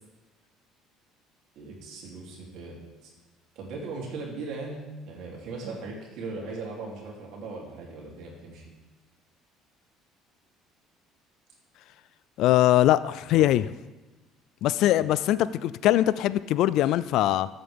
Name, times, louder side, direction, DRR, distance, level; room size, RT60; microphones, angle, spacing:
voice 1, 1.5-2.8 3.0-3.1 3.5-8.7 13.3-13.5 14.9-15.1, right 3 dB, 70° right, -2 dB, 3.1 m, -38 dB
voice 2, 12.4-13.7 14.6-17.5, left 13 dB, 70° left, 16 dB, 0.3 m, -22 dB
14.0 x 7.8 x 3.6 m, 1.1 s
supercardioid pair, 90°, 0 cm